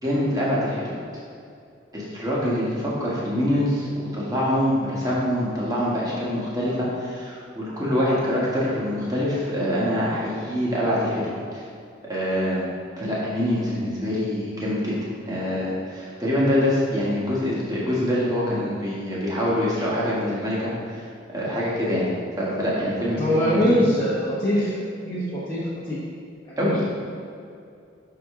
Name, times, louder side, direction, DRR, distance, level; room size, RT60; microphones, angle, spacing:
voice 1, 0.0-1.0 1.9-11.6 12.1-12.6 13.0-15.0 15.2-21.0 21.3-22.0 22.4-23.8 26.6-26.8, equal, 20° right, -7 dB, 1.3 m, -25 dB
voice 2, 23.2-24.7 25.0-25.2 25.5-25.6 25.9-26.0 26.6-26.7, equal, 20° left, -10 dB, 1.1 m, -22 dB
6.0 x 4.9 x 3.7 m, 2.5 s
head